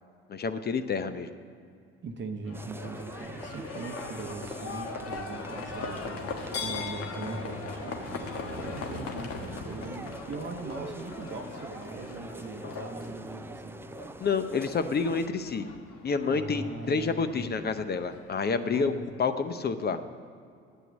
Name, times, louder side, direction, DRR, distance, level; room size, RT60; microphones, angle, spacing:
voice 1, 0.3-1.3 14.2-15.7 16.0-18.9 19.2-20.0, left 5 dB, 35° left, 10 dB, 0.7 m, -28 dB
voice 2, 2.0-13.8 16.3-17.5 18.7-19.0, right 3 dB, 40° right, 5 dB, 0.9 m, -40 dB
Livestock farm animals working animals, 2.5-18.9, left 4 dB, 50° left, 1.4 m, -40 dB
sound 1, 2.5-15.3, right 2 dB, 10° right, 0.4 m, -44 dB
9.1 x 8.2 x 7.5 m, 2.4 s
hypercardioid pair, 70°, 29 cm